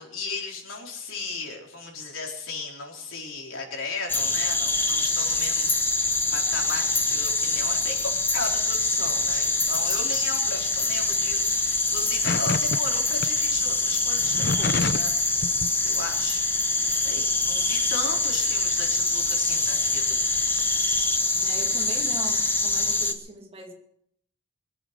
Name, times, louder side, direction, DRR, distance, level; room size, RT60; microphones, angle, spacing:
voice 1, 0.0-15.6 15.8-20.2, left 3 dB, 85° left, 0 dB, 4.2 m, -36 dB
sound 1, 4.1-23.1, left 3 dB, 10° left, 1.1 m, -24 dB
sound 2, 12.2-12.8 13.2-13.3 14.2-15.1 15.4-15.7, left 3 dB, 55° left, 0.7 m, -27 dB
voice 2, 21.3-23.7, right 1 dB, 30° right, 2 dB, 2.4 m, -40 dB
22.0 x 8.5 x 6.7 m, 0.70 s
head